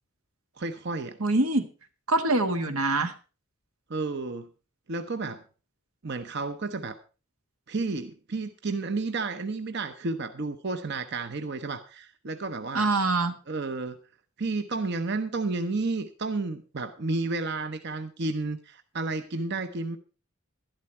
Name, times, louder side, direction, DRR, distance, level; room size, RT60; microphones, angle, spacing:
voice 1, 0.6-1.2 3.9-4.5 4.9-5.4 6.0-7.0 7.7-12.9 13.5-14.0 14.4-20.0, right 3 dB, 50° right, 9 dB, 0.7 m, -31 dB
voice 2, 1.2-1.7 2.1-3.1 12.7-13.4, right 2 dB, 85° right, 8 dB, 1.5 m, -24 dB
12.0 x 11.5 x 4.3 m, 0.34 s
head